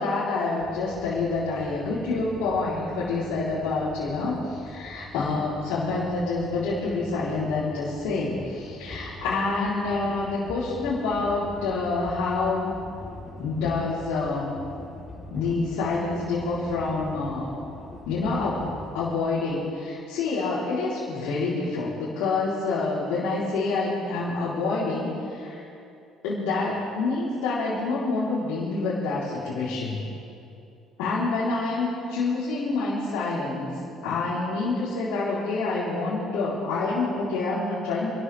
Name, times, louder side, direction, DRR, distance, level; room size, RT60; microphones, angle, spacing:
voice 1, 0.0-12.7 13.3-14.5 15.3-17.6 18.1-25.6 26.2-30.0 31.0-33.7 34.0-38.1, left 3 dB, 85° left, -11 dB, 4.4 m, -27 dB
sound 1, 0.6-19.2, left 1 dB, 25° left, 5.0 m, -43 dB
27.0 x 13.0 x 3.8 m, 2.7 s
supercardioid pair, 75°, 0 cm